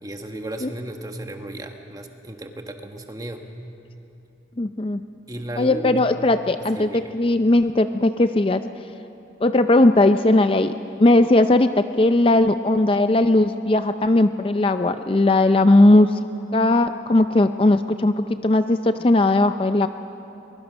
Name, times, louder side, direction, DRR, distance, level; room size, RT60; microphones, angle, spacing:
voice 1, 0.0-3.5 5.3-6.0 6.7-7.2, right 1 dB, 20° right, 5 dB, 1.3 m, -34 dB
voice 2, 4.6-5.0 5.6-8.6 9.4-10.7 11.0-16.2 16.5-19.9, left 2 dB, 30° left, 9 dB, 0.4 m, -18 dB
22.5 x 22.0 x 6.4 m, 3.0 s
head